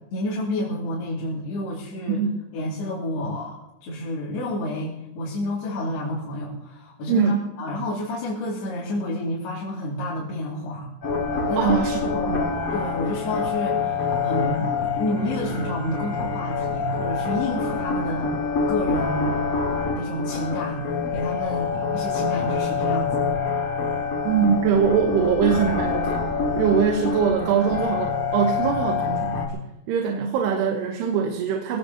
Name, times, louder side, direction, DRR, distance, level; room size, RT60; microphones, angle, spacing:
voice 1, 0.1-2.2 2.5-10.9 11.4-11.8 12.1-12.4 12.7-18.4 18.7-19.4 19.9-20.8 21.1-23.3, left 1 dB, 75° left, -7 dB, 4.5 m, -29 dB
voice 2, 7.1-7.4 11.6-12.4 24.2-26.2 26.6-29.6 29.9-31.8, right 7 dB, 85° right, 2 dB, 3.2 m, -22 dB
sound 1, 11.0-29.5, left 4 dB, 40° left, 2.4 m, -26 dB
22.5 x 18.0 x 2.9 m, 0.88 s
omnidirectional pair, 4.7 m